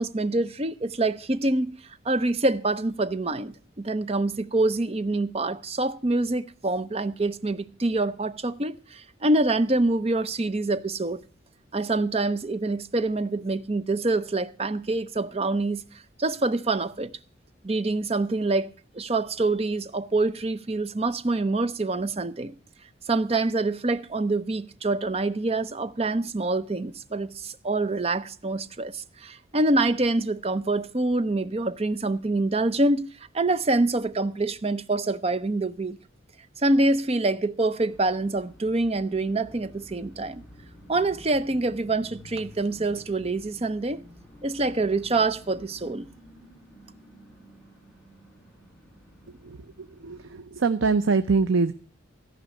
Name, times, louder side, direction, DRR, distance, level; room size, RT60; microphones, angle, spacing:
voice 1, 0.0-1.8 2.0-11.2 11.7-15.8 16.2-17.1 17.6-18.7 18.9-22.5 23.1-33.1 33.3-36.0 36.6-40.4 40.9-44.0 44.4-46.1, right 2 dB, 30° right, 0.6 m, -26 dB
sound 1, 37.9-50.3, equal, 5° left, 3.7 m, -50 dB
voice 2, 50.0-51.7, right 4 dB, 85° right, 0.6 m, -23 dB
14.0 x 5.4 x 9.4 m
head